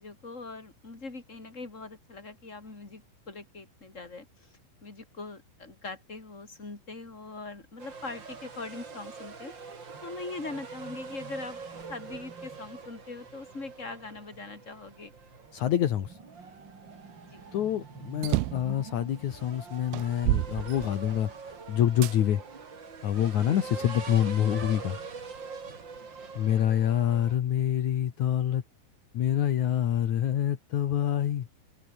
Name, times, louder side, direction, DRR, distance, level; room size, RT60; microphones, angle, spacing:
voice 1, 0.0-4.5 4.8-9.5 10.0-11.6 11.9-15.1 17.3-17.4 26.2-26.3, left 3 dB, 15° left, 4.1 m, -42 dB
sound 1, 7.8-27.4, right 5 dB, 30° right, 2.5 m, -44 dB
voice 2, 15.5-16.2 17.5-21.3 21.7-22.4 23.0-25.0 26.4-28.6 29.1-31.5, left 10 dB, 70° left, 1.8 m, -26 dB
sound 2, 18.2-18.7 19.4-19.5 19.9-21.4 22.0-22.2 22.9-23.9, right 19 dB, 85° right, 2.4 m, -30 dB
open air
omnidirectional pair, 5.7 m